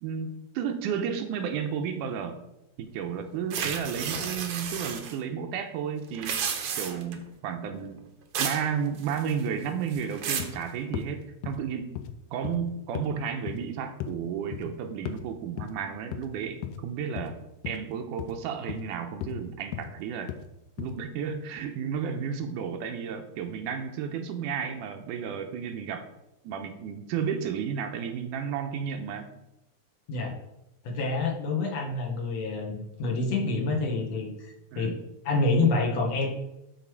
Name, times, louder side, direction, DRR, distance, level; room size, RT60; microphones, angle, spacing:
voice 1, 0.0-2.4 2.8-6.4 6.8-8.0 8.4-12.0 12.3-17.3 17.7-20.3 20.8-26.1 26.4-29.3 34.7-35.0, right 7 dB, 85° right, 6 dB, 2.3 m, -32 dB
sound 1, 3.5-5.1 6.1-7.1 8.3-8.7 9.0-9.5 9.9-10.6, right 7 dB, 65° right, 1.5 m, -32 dB
sound 2, 10.0-10.1 10.4-10.6 10.9-11.1 11.4-11.6 12.0-12.2 12.4-12.6 12.9-13.1 13.5-13.7 14.0-14.2 14.5-14.7 15.1-15.2 15.6-15.7 16.1-16.3 16.6-16.8 17.2-17.3 17.6-17.8 18.2-18.4 18.7-18.8 19.2-19.4 19.7-19.9 20.3-20.4 20.8-21.0, left 11 dB, 85° left, 2.2 m, -36 dB
voice 2, 30.8-34.9 35.3-36.3, left 3 dB, 60° left, 0 dB, 2.4 m, -27 dB
12.5 x 4.3 x 4.7 m, 0.88 s
omnidirectional pair, 3.7 m